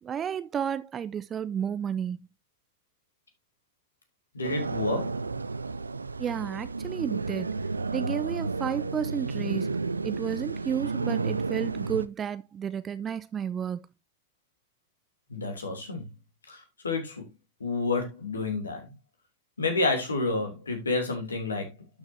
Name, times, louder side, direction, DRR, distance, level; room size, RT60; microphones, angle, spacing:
voice 1, 0.0-2.2 6.2-7.6 7.9-9.7 10.0-13.9, right 8 dB, 25° right, 0.6 m, -32 dB
voice 2, 4.3-5.1 15.3-16.0 16.5-17.2 17.6-18.9 19.6-21.7, left 3 dB, 75° left, 3.0 m, -29 dB
sound 1, 4.4-12.1, right 4 dB, 80° right, 0.5 m, -32 dB
12.0 x 6.4 x 2.8 m
figure-of-eight pair, 90°, 0 cm